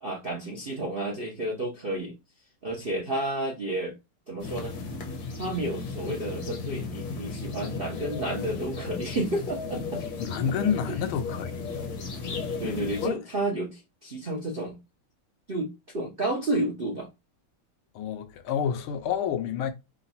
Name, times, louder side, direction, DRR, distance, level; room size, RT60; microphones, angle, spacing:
voice 1, 0.0-2.1 2.6-3.9 4.3-4.7 5.4-10.0 10.9-11.0 12.6-14.8 15.5-17.1, right 1 dB, 50° right, 0.6 m, -31 dB
sound 1, 4.4-13.1, left 4 dB, 60° left, 1.2 m, -35 dB
voice 2, 10.2-11.7 13.0-13.2 17.9-19.7, left 8 dB, 75° left, 1.5 m, -29 dB
3.9 x 2.3 x 4.0 m
omnidirectional pair, 2.4 m